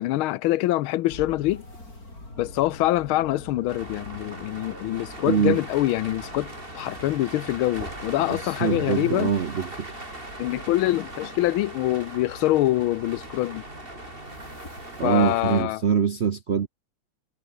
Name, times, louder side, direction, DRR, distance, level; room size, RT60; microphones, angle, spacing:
voice 1, 0.0-1.6 2.4-9.3 10.4-13.6 15.0-15.8, left 16 dB, 90° left, 1.5 m, -25 dB
sound 1, 1.1-15.5, left 2 dB, 45° left, 8.2 m, -46 dB
sound 2, 3.7-15.6, right 1 dB, 25° right, 5.4 m, -40 dB
voice 2, 5.3-5.6 8.6-9.9 15.0-16.7, right 7 dB, 50° right, 0.8 m, -23 dB
omnidirectional pair, 2.2 m